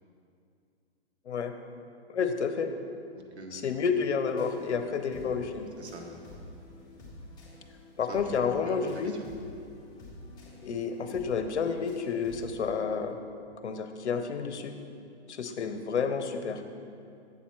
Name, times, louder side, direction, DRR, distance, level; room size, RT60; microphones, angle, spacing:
voice 1, 2.1-2.7 3.5-5.7 8.0-9.2 10.6-13.2 13.6-14.8 15.3-16.6, left 6 dB, 85° left, 7 dB, 0.8 m, -30 dB
voice 2, 3.1-3.8 5.1-5.3 5.8-6.4 8.1-9.2, right 2 dB, 80° right, 2 dB, 1.2 m, -45 dB
sound 1, 4.2-12.7, left 1 dB, 10° left, 1.9 m, -49 dB
8.1 x 4.3 x 5.8 m, 2.5 s
hypercardioid pair, 135°, 33 cm